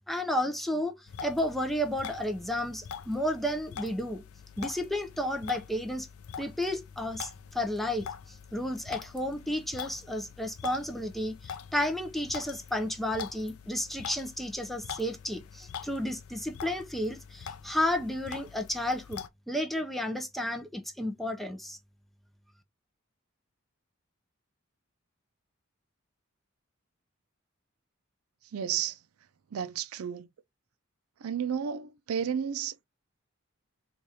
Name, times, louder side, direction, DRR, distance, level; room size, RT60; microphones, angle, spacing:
voice 1, 0.1-4.2 4.6-6.1 6.4-21.8, left 1 dB, ahead, 0.5 m, -32 dB
sound 1, 1.1-19.3, left 7 dB, 85° left, 0.4 m, -44 dB
voice 2, 28.5-29.0 29.5-30.3 31.2-32.8, right 8 dB, 85° right, 0.4 m, -32 dB
4.8 x 2.4 x 2.7 m
head